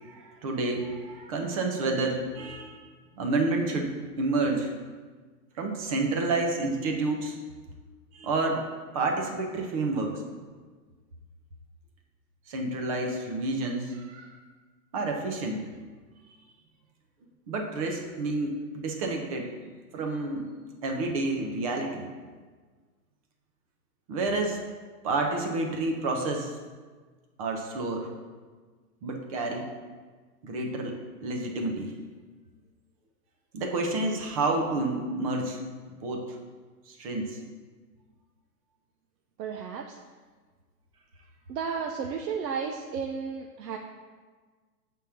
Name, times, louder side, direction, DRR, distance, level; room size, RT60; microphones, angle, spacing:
voice 1, 0.0-2.8 3.2-4.7 5.6-7.4 8.1-8.6 8.9-10.5 12.5-14.3 14.9-15.6 17.5-19.5 19.9-20.5 20.8-22.1 24.1-24.6 25.0-26.5 27.4-28.1 29.0-29.7 30.4-31.9 33.5-35.6 35.9-36.4 36.9-37.4, right 2 dB, 25° right, 2 dB, 0.5 m, -29 dB
voice 2, 39.4-40.0 41.5-43.8, right 6 dB, 75° right, 2 dB, 0.7 m, -33 dB
6.2 x 3.6 x 5.7 m, 1.4 s
hypercardioid pair, 145°, 49 cm